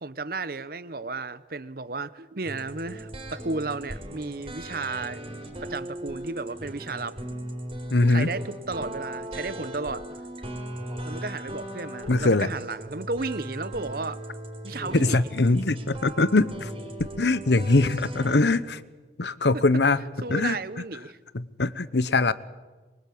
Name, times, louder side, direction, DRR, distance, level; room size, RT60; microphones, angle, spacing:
voice 1, 0.0-5.2 5.6-7.2 8.1-10.1 11.0-14.2 14.6-15.3 19.5-19.6 20.2-21.2, right 3 dB, 55° right, 0.9 m, -33 dB
sound 1, 2.4-18.6, right 1 dB, 30° right, 4.4 m, -38 dB
voice 2, 7.9-8.3 12.1-12.5 14.9-16.7 17.0-18.8 19.2-20.0 20.3-20.6 21.3-22.3, left 2 dB, 75° left, 0.9 m, -22 dB
24.5 x 22.5 x 8.6 m
head